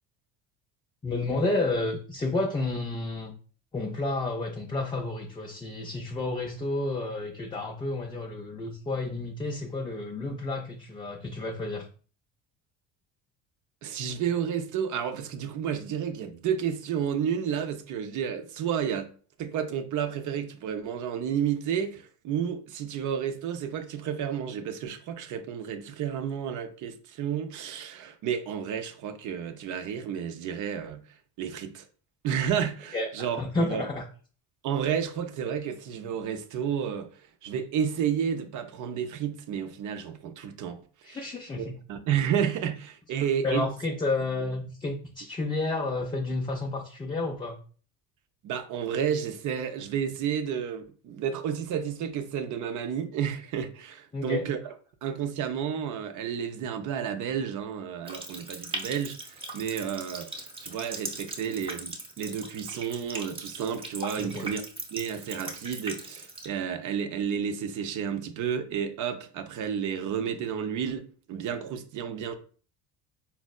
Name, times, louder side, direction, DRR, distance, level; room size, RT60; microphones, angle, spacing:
voice 1, 1.0-3.4 3.7-11.9 32.9-34.0 41.0-41.7 43.4-47.6 54.1-54.5 64.2-64.5, left 2 dB, 15° left, 0.3 m, -31 dB
voice 2, 13.8-19.1 19.4-31.0 31.4-31.8 32.2-33.8 34.6-37.1 37.4-40.8 41.1-41.2 41.6-43.6 48.4-54.6 55.0-64.6 64.9-72.3, right 8 dB, 50° right, 0.6 m, -31 dB
Water tap faucet, 58.0-66.5, right 2 dB, 15° right, 0.7 m, -39 dB
4.2 x 2.0 x 2.3 m
supercardioid pair, 85°, 39 cm